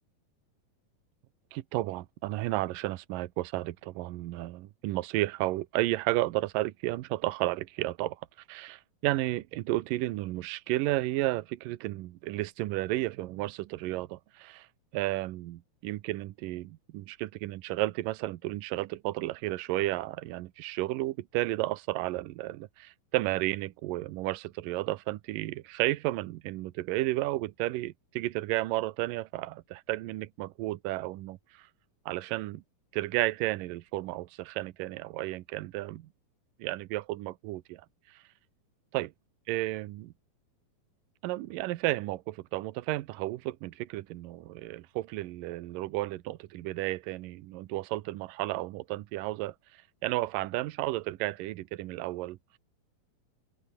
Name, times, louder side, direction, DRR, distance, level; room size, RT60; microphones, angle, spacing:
voice 1, 1.5-8.2 8.5-14.7 14.9-31.7 32.1-32.6 32.9-36.1 36.6-37.8 38.1-38.2 38.9-39.1 39.5-40.1 41.2-52.6, right 17 dB, 75° right, 2.5 m, -32 dB
open air
omnidirectional pair, 4.1 m